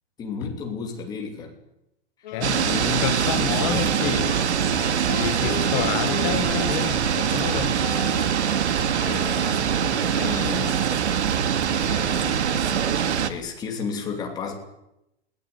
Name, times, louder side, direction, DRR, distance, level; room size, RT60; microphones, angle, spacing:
voice 1, 0.2-1.6 2.6-3.9 5.6-5.8 9.0-9.4 10.1-10.9 11.6-12.9 13.2-14.5, left 5 dB, 10° left, 2.9 m, -33 dB
sound 1, 2.2-10.6, left 9 dB, 45° left, 2.7 m, -37 dB
voice 2, 2.3-4.4 5.2-7.8, left 11 dB, 30° left, 1.7 m, -30 dB
sound 2, 2.4-13.3, right 8 dB, 85° right, 2.4 m, -23 dB
20.5 x 19.0 x 9.6 m
hypercardioid pair, 175°, 33 cm